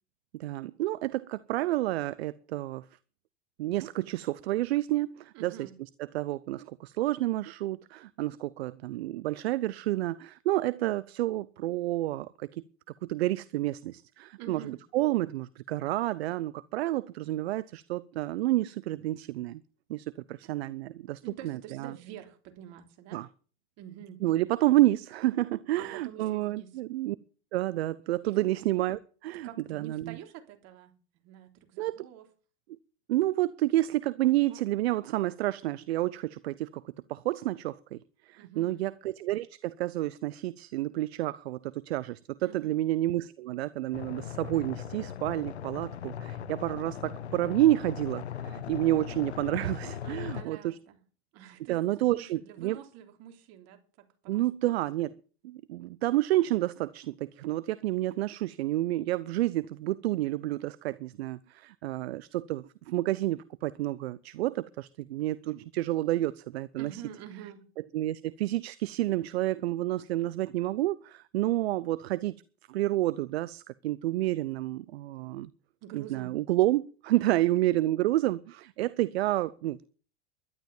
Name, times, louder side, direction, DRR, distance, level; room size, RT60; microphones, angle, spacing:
voice 1, 0.3-2.8 3.6-5.7 6.1-12.6 13.0-19.6 19.9-21.9 23.1-23.3 24.2-27.2 27.5-30.2 31.8-32.1 33.1-36.8 37.1-38.0 38.3-50.8 51.7-52.8 54.3-55.2 55.4-67.0 67.9-72.3 72.7-75.5 75.9-79.9, right 15 dB, 75° right, 0.7 m, -29 dB
voice 2, 5.3-5.7 14.4-14.8 21.2-23.2 23.8-24.2 25.7-26.7 28.2-28.5 29.4-30.9 31.2-32.3 38.4-38.9 42.4-42.8 50.0-51.0 51.3-51.8 52.1-53.8 54.2-54.4 66.8-67.7 75.8-76.3 77.1-77.5, right 10 dB, 55° right, 3.5 m, -46 dB
sound 1, 43.9-50.5, left 8 dB, 90° left, 1.0 m, -39 dB
12.0 x 12.0 x 7.2 m
hypercardioid pair, 95°, 32 cm